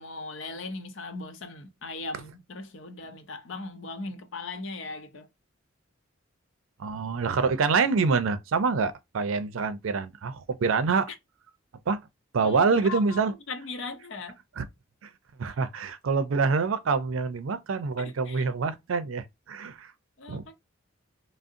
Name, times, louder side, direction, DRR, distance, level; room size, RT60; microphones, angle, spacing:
voice 1, 0.0-5.3 12.4-14.4 18.0-18.5 20.2-20.5, left 3 dB, 70° left, 0.6 m, -38 dB
voice 2, 6.8-11.1 11.9-12.0 12.3-13.3 14.6-14.7 15.0-15.1 15.4-19.9 20.3-20.4, right 4 dB, 90° right, 0.5 m, -26 dB
3.6 x 2.0 x 2.5 m
head